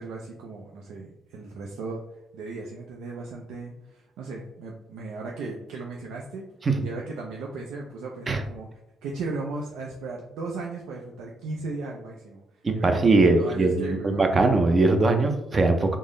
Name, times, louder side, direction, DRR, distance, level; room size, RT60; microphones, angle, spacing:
voice 1, 0.0-2.0 2.3-6.4 6.8-8.7 9.0-12.4 12.8-14.2, right 3 dB, 90° right, -1 dB, 0.4 m, -36 dB
voice 2, 12.6-16.0, right 3 dB, 35° right, 5 dB, 0.5 m, -21 dB
3.7 x 2.0 x 3.7 m, 0.88 s
cardioid pair, 90°, 0 cm